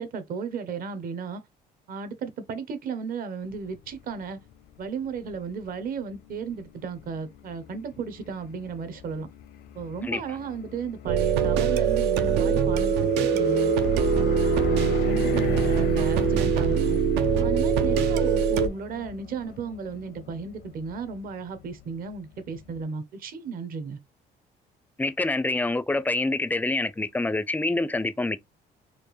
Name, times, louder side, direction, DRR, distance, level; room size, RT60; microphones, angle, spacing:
voice 1, 0.0-1.4 1.9-4.4 4.8-9.3 9.7-13.7 14.1-17.0 17.4-24.0, right 5 dB, 60° right, 1.0 m, -34 dB
sound 1, 3.5-22.8, left 9 dB, 75° left, 0.6 m, -39 dB
sound 2, 11.1-18.7, right 6 dB, 90° right, 0.7 m, -23 dB
voice 2, 25.0-28.4, left 2 dB, 10° left, 0.4 m, -26 dB
4.4 x 2.5 x 3.1 m
cardioid pair, 110°, 17 cm